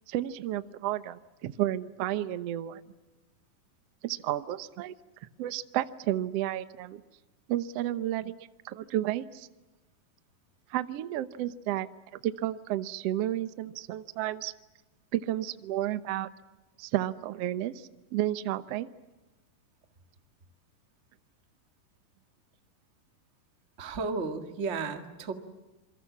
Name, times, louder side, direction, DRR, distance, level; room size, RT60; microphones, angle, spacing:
voice 1, 0.1-2.8 4.0-4.9 5.4-7.0 7.5-8.3 8.6-9.5 10.7-11.9 12.2-14.5 15.1-16.3 16.8-18.9, right 13 dB, 70° right, 12 dB, 1.5 m, -32 dB
voice 2, 23.8-25.3, right 4 dB, 30° right, 6 dB, 1.5 m, -33 dB
27.5 x 24.0 x 7.4 m, 1.1 s
omnidirectional pair, 4.1 m